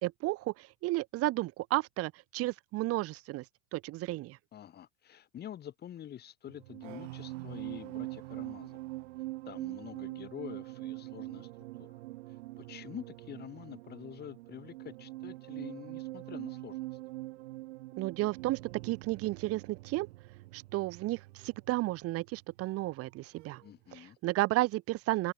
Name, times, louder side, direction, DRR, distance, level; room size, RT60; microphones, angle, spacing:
voice 1, 0.0-3.4 3.7-4.4 18.0-20.1 20.5-23.6 23.9-25.3, right 18 dB, 40° right, 3.2 m, -33 dB
voice 2, 4.5-8.8 9.5-12.0 12.3-17.0 23.6-24.2, left 10 dB, 25° left, 7.6 m, -47 dB
sound 1, 6.5-23.1 23.4-23.7, right 20 dB, 75° right, 1.6 m, -44 dB
supercardioid pair, 155°, 36 cm